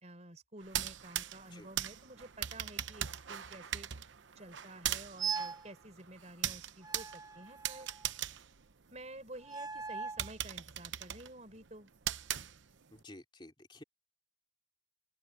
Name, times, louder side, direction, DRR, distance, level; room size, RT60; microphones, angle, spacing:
voice 1, 0.0-3.9 4.3-7.9 8.9-11.9, right 1 dB, 35° right, 4.9 m, -51 dB
sound 1, 0.6-9.4 9.8-9.9 10.2-13.0, right 11 dB, 65° right, 0.8 m, -40 dB
sound 2, 5.2-5.7 6.8-8.1 9.4-10.3, right 6 dB, 20° right, 0.5 m, -40 dB
voice 2, 12.9-13.8, left 1 dB, 25° left, 3.0 m, -52 dB
open air
head